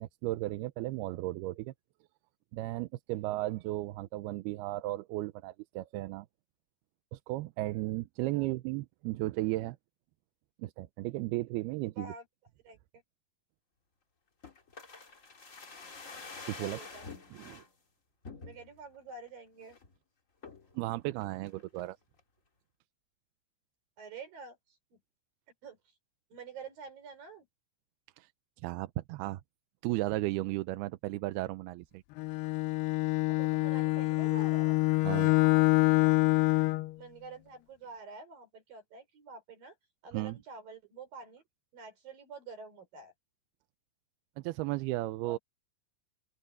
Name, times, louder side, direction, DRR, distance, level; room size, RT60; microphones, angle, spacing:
voice 1, 0.0-1.7 2.5-6.3 7.1-9.8 10.6-12.1 16.5-16.8 17.3-17.6 20.8-22.0 28.2-28.3 28.6-29.4 29.8-32.0 35.0-35.3 40.1-40.4 44.4-45.4, right 18 dB, 85° right, 2.6 m, -35 dB
voice 2, 12.0-12.3 12.6-12.8 16.6-17.1 18.5-19.8 24.0-24.6 24.9-25.0 25.6-25.8 26.3-27.5 33.3-34.8 35.0-36.2 36.9-39.7 40.0-41.4 41.7-43.1 45.2-45.4, right 4 dB, 60° right, 6.6 m, -48 dB
sound 1, 14.4-17.7 18.2-18.9 19.3-19.4 19.6-19.9 20.4-20.7 21.2-21.9 22.2-22.3, left 4 dB, 30° left, 1.5 m, -47 dB
Bowed string instrument, 32.2-36.9, left 21 dB, 90° left, 2.8 m, -26 dB
open air
omnidirectional pair, 4.5 m